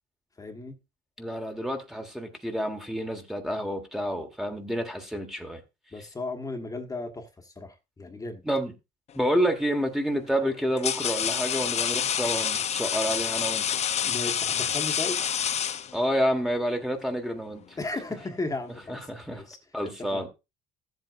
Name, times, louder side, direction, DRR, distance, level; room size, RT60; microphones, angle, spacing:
voice 1, 0.4-0.7 5.9-8.4 14.0-15.2 17.8-19.6 19.8-20.2, left 2 dB, 20° left, 1.4 m, -35 dB
voice 2, 1.2-5.6 8.4-8.7 9.1-13.8 15.9-17.8 18.9-19.4 19.7-20.3, equal, 5° right, 1.4 m, -29 dB
sound 1, 9.2-9.5 10.3-16.3, left 9 dB, 40° left, 0.5 m, -28 dB
14.0 x 7.9 x 2.5 m
cardioid pair, 110°, 17 cm